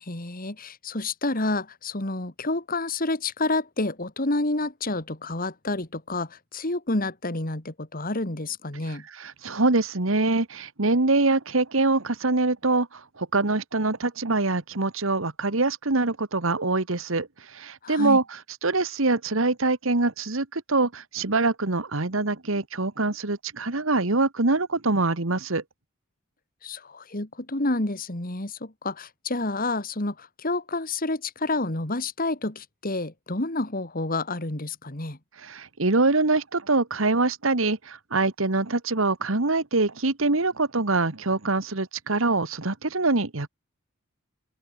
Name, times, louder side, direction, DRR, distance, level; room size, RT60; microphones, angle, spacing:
voice 1, 0.0-9.0 17.8-18.2 26.6-35.2, left 2 dB, 45° left, 2.6 m, -29 dB
voice 2, 8.9-25.6 35.4-43.5, right 3 dB, 70° right, 1.7 m, -24 dB
open air
head